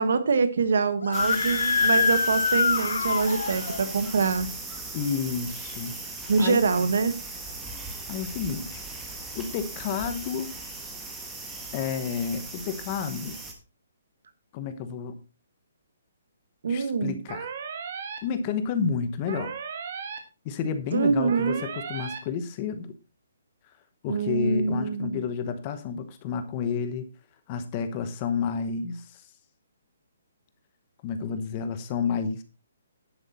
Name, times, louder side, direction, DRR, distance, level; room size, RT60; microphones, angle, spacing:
voice 1, 0.0-4.5 6.3-7.2 16.6-17.2 20.9-21.6 24.1-25.3, right 4 dB, 60° right, 12 dB, 1.5 m, -25 dB
Screaming, 1.0-3.8, left 5 dB, 85° left, 0.9 m, -25 dB
sound 1, 1.1-13.5, right 3 dB, 5° right, 1.3 m, -38 dB
voice 2, 4.9-6.0 6.2-6.6 8.1-8.8 9.3-10.5 11.7-13.4 14.5-15.2 16.7-17.5 18.2-19.6 20.4-22.9 24.0-27.1 27.5-29.2 31.0-32.4, left 6 dB, 20° left, 10 dB, 1.0 m, -30 dB
sound 2, 17.3-18.2 19.3-20.2 21.3-22.2, right 6 dB, 40° right, 1.7 m, -35 dB
10.5 x 8.1 x 4.2 m, 0.29 s
hypercardioid pair, 175°, 0 cm